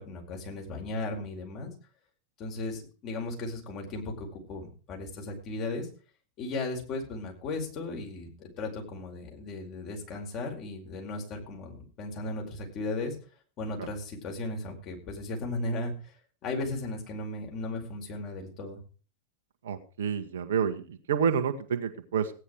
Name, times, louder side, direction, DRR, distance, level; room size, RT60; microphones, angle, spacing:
voice 1, 0.0-1.7 2.4-5.9 6.4-13.1 13.6-16.1 16.4-18.8, left 2 dB, 35° left, 1 dB, 5.0 m, -36 dB
voice 2, 19.6-22.3, right 7 dB, 60° right, 8 dB, 1.5 m, -29 dB
15.5 x 9.9 x 4.9 m, 0.38 s
figure-of-eight pair, 90°, 0 cm